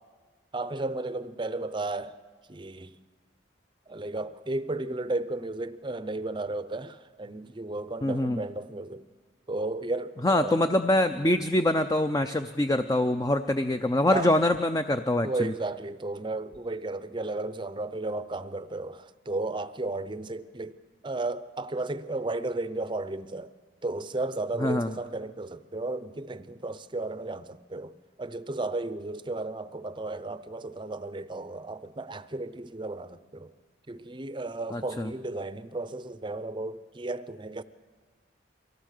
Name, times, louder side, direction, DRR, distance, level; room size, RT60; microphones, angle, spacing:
voice 1, 0.5-2.2 2.5-3.0 3.9-9.1 9.5-10.7 14.1-14.4 15.2-20.8 21.0-23.5 23.8-33.5 33.9-37.6, right 2 dB, 25° right, 0.6 m, -34 dB
voice 2, 8.0-8.4 10.2-15.5 24.6-24.9 34.7-35.1, left 1 dB, 20° left, 0.5 m, -24 dB
23.5 x 17.0 x 6.6 m
head